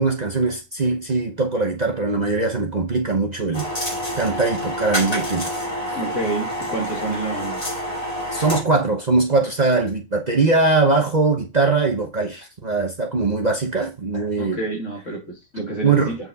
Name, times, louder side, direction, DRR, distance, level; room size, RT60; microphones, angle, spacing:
voice 1, 0.0-3.7 4.2-5.5 5.8-6.0 8.3-14.6 15.6-16.1, right 3 dB, 35° right, 0.9 m, -21 dB
sound 1, 3.5-8.6, equal, 25° left, 2.6 m, -27 dB
voice 2, 5.9-7.6 14.4-16.2, right 2 dB, 60° left, 2.8 m, -28 dB
8.0 x 4.7 x 4.0 m
omnidirectional pair, 1.4 m